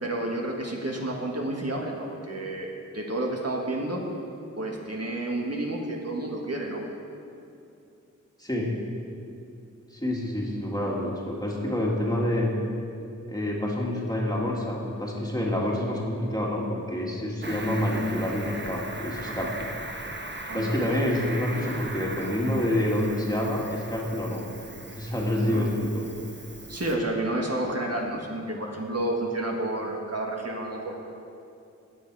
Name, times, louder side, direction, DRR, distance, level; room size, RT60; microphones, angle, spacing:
voice 1, 0.0-2.7 2.9-4.0 4.6-6.8 19.3-19.5 20.5-20.7 25.4-25.7 26.7-31.0, right 1 dB, 50° right, -1 dB, 1.7 m, -30 dB
voice 2, 8.4-8.8 9.9-12.5 13.2-19.7 20.5-24.4 24.9-26.0, left 1 dB, 10° left, -3 dB, 2.1 m, -27 dB
Cricket, 17.4-26.9, right 2 dB, 35° right, 1.2 m, -39 dB
17.0 x 7.7 x 4.8 m, 2.6 s
wide cardioid pair, 60°, 32 cm